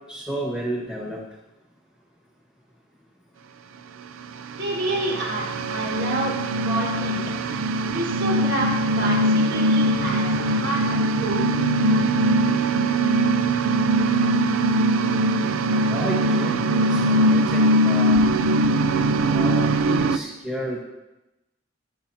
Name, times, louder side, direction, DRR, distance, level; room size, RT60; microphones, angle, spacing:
voice 1, 0.1-1.2 15.9-18.3 19.3-20.8, equal, 5° right, -3 dB, 1.4 m, -31 dB
voice 2, 4.6-7.2 7.9-11.5, right 1 dB, 60° right, -5 dB, 4.4 m, -29 dB
sound 1, 4.6-20.2, right 1 dB, 80° right, 0.5 m, -21 dB
22.5 x 7.6 x 2.8 m, 0.98 s
head